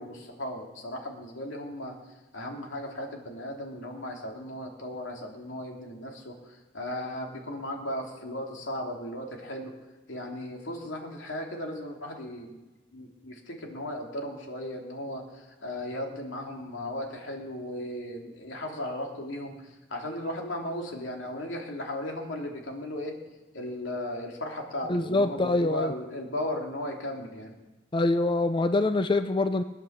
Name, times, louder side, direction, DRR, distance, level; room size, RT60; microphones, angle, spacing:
voice 1, 0.0-2.0 2.3-9.7 10.1-12.6 12.9-23.2 23.5-27.6, left 1 dB, 85° left, 1 dB, 2.9 m, -36 dB
voice 2, 24.9-25.9 27.9-29.6, left 2 dB, 25° left, 9 dB, 0.5 m, -25 dB
21.0 x 8.9 x 7.3 m, 1.1 s
head